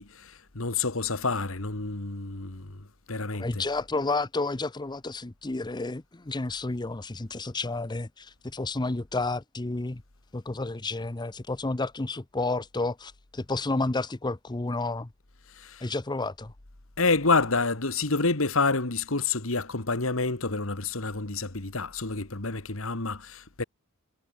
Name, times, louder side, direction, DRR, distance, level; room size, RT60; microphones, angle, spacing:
voice 1, 0.0-3.6 15.5-15.9 17.0-23.6, left 3 dB, 80° left, 2.2 m, -28 dB
voice 2, 3.3-10.0 10.3-15.1 15.8-16.5, left 2 dB, 20° left, 0.7 m, -31 dB
head